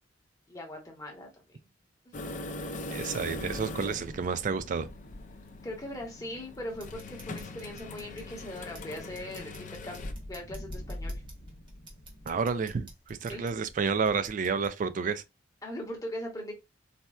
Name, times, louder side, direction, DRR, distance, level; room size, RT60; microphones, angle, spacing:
voice 1, 0.5-1.4 2.0-2.2 5.6-11.2 13.3-13.6 15.6-16.5, left 1 dB, 20° left, 0.9 m, -40 dB
sound 1, 2.1-10.1, left 2 dB, 40° left, 0.4 m, -41 dB
voice 2, 2.9-4.9 12.3-15.2, right 5 dB, 40° right, 0.3 m, -30 dB
sound 2, 3.3-12.3, left 1 dB, 75° left, 0.8 m, -45 dB
sound 3, 6.7-14.7, right 1 dB, 25° right, 1.0 m, -52 dB
4.1 x 2.2 x 2.3 m
head